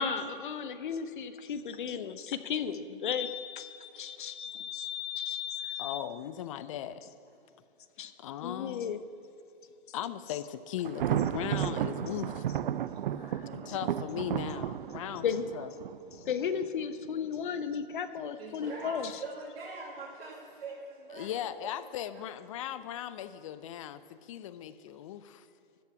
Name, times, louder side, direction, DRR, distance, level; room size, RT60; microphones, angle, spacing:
voice 1, 0.0-6.0 8.0-8.1 8.4-9.0 15.2-15.4 16.3-19.2, left 7 dB, 60° left, 11 dB, 0.9 m, -34 dB
voice 2, 5.8-7.1 8.2-9.0 9.9-12.5 13.5-15.2 15.5-15.7 21.1-25.5, left 11 dB, 35° left, 14 dB, 0.5 m, -38 dB
Thunder, 10.9-16.7, right 10 dB, 60° right, 0.5 m, -33 dB
voice 3, 13.2-14.0 18.4-21.5, right 3 dB, 80° right, -4 dB, 2.2 m, -43 dB
13.5 x 5.8 x 8.4 m, 2.6 s
hypercardioid pair, 135°, 29 cm